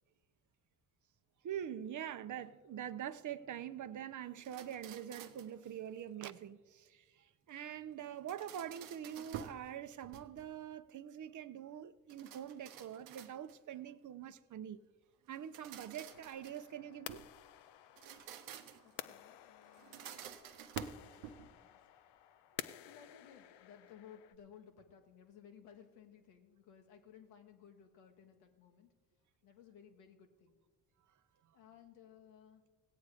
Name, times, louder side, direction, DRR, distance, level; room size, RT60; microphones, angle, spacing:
voice 1, 1.4-14.8 15.3-17.2, right 10 dB, 40° right, 0.6 m, -44 dB
sound 1, 4.4-5.6 8.0-9.7 10.0-10.6 12.1-13.7 15.3-17.3 17.9-19.0 19.7-21.6, right 8 dB, 90° right, 0.8 m, -50 dB
sound 2, 16.1-24.4, left 12 dB, 60° left, 0.6 m, -52 dB
voice 2, 18.8-20.3 20.7-21.8 22.8-28.9 29.4-30.6 31.5-32.6, left 8 dB, 85° left, 1.4 m, -59 dB
17.0 x 8.2 x 4.9 m
hypercardioid pair, 60°, 46 cm